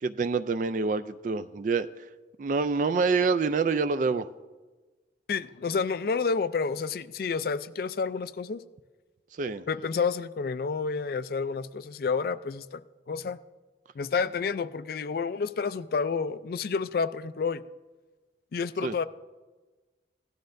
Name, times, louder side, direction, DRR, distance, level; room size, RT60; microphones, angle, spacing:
voice 1, 0.0-1.9 2.4-4.3 9.4-9.6 18.8-18.9, right 4 dB, 45° right, 12 dB, 0.3 m, -26 dB
voice 2, 5.3-8.6 9.7-13.4 14.0-17.6 18.5-19.0, left 5 dB, 55° left, 15 dB, 0.3 m, -30 dB
17.0 x 11.5 x 2.6 m, 1.3 s
head